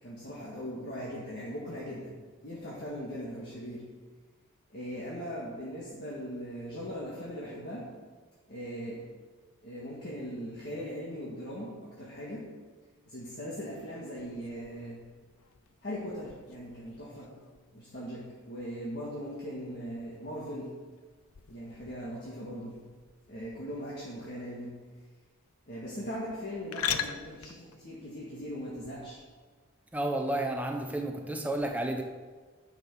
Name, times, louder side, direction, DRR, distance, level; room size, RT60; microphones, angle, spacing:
voice 1, 0.0-3.9 4.7-7.9 8.5-9.1 9.6-12.5 13.1-15.0 15.8-17.3 17.7-20.8 21.5-22.9 23.3-24.8 25.7-29.2, equal, 50° left, 1.8 m, -39 dB
sound 1, 14.2-29.2, left 9 dB, 85° left, 0.6 m, -44 dB
voice 2, 29.9-32.0, right 1 dB, 5° right, 0.8 m, -31 dB
10.0 x 6.1 x 6.0 m
head